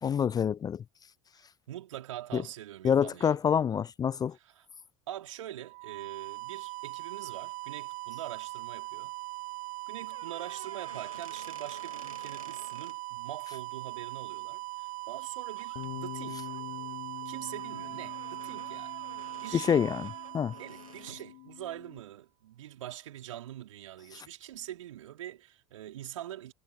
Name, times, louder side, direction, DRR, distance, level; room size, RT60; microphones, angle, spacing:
voice 1, 0.0-0.8 2.3-2.4 2.8-4.4 19.5-20.0 20.3-20.5, left 7 dB, 20° left, 0.5 m, -26 dB
voice 2, 1.7-3.4 4.3-4.7 5.1-9.1 9.9-16.5 17.2-19.0 19.4-19.8 20.6-26.5, right 12 dB, 70° right, 4.7 m, -44 dB
sound 1, 5.6-21.4, right 24 dB, 50° right, 2.7 m, -40 dB
sound 2, 10.0-13.0 15.1-15.3 15.6-15.9 16.4-21.3, right 2 dB, 90° right, 3.0 m, -52 dB
Bass guitar, 15.7-22.0, left 30 dB, 50° left, 1.2 m, -46 dB
figure-of-eight pair, 75°, 17 cm